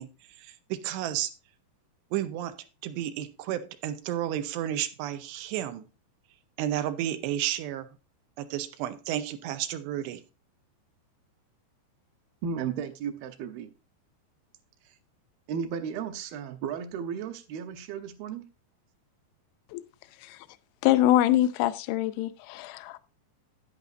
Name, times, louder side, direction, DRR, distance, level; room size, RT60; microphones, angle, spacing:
voice 1, 0.0-1.3 2.1-5.9 6.6-7.9 8.4-10.2, right 12 dB, 90° right, 2.9 m, -32 dB
voice 2, 12.4-13.7 14.9-15.0 15.5-18.5, right 7 dB, 70° right, 2.5 m, -34 dB
voice 3, 20.8-23.0, left 13 dB, 80° left, 2.2 m, -24 dB
11.0 x 10.0 x 2.6 m
omnidirectional pair, 5.0 m